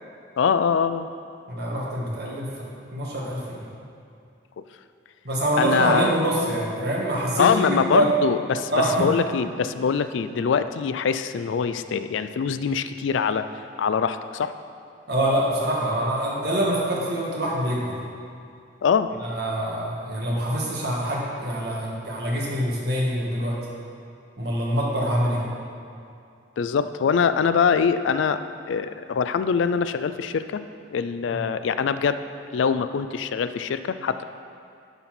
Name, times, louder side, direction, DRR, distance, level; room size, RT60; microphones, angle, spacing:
voice 1, 0.4-1.1 5.6-6.2 7.4-14.5 18.8-19.1 26.6-28.4 28.7-30.6 30.9-32.2 32.5-34.2, left 6 dB, 70° left, 12 dB, 0.3 m, -23 dB
voice 2, 1.5-2.6 2.9-3.6 5.2-8.1 8.7-9.1 15.1-18.0 19.2-23.6 24.4-25.4 31.3-31.4, right 1 dB, 55° right, -4 dB, 1.7 m, -25 dB
11.0 x 4.2 x 5.8 m, 2.5 s
head